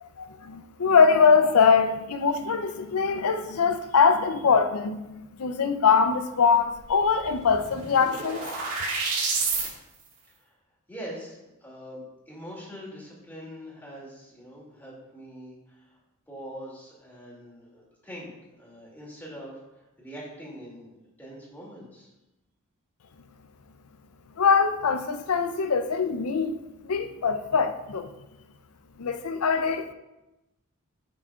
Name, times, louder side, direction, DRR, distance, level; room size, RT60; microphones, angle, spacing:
voice 1, 0.0-8.4 24.4-28.1 29.0-29.9, left 5 dB, 85° left, 0.6 m, -23 dB
sound 1, 6.8-6.9 7.2-9.7, right 4 dB, 90° right, 1.8 m, -29 dB
voice 2, 10.9-16.0 16.3-22.1, equal, 10° left, 2.5 m, -43 dB
11.0 x 5.9 x 2.4 m
head